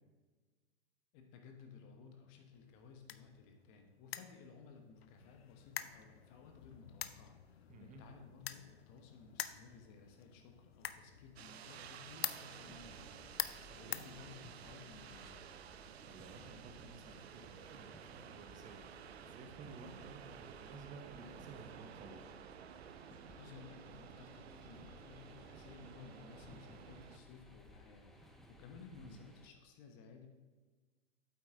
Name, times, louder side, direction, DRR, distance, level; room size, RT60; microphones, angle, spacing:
voice 1, 1.1-15.5 23.3-30.3, left 5 dB, 35° left, 4 dB, 1.2 m, -57 dB
sound 1, 2.5-14.8, left 10 dB, 65° left, 0.6 m, -47 dB
voice 2, 7.7-8.0 13.6-14.0 16.0-18.9 19.2-22.2 28.9-29.3, right 3 dB, 25° right, 5 dB, 1.2 m, -54 dB
sound 2, 11.4-27.2, right 9 dB, 70° right, 0.6 m, -54 dB
sound 3, 12.6-29.5, left 1 dB, ahead, 0.4 m, -60 dB
8.4 x 8.4 x 3.8 m, 1.3 s
figure-of-eight pair, 110°, 33 cm